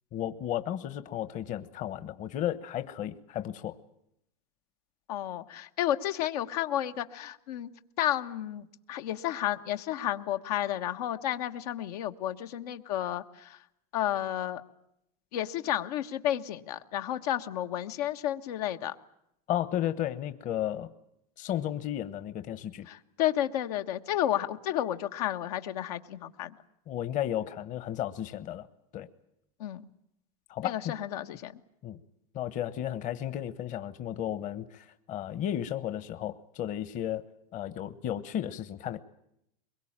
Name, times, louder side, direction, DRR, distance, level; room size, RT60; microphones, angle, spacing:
voice 1, 0.1-3.8 19.5-20.9 21.4-22.8 26.9-28.7 28.9-29.1 30.5-30.9 31.8-32.0 32.3-39.0, left 11 dB, 40° left, 13 dB, 1.2 m, -33 dB
voice 2, 5.1-7.7 8.0-13.6 13.9-14.6 15.3-18.9 22.9-26.5 29.6-29.8 30.6-31.5, left 12 dB, 80° left, 6 dB, 1.4 m, -32 dB
23.0 x 22.0 x 8.8 m, 0.78 s
supercardioid pair, 135°, 20 cm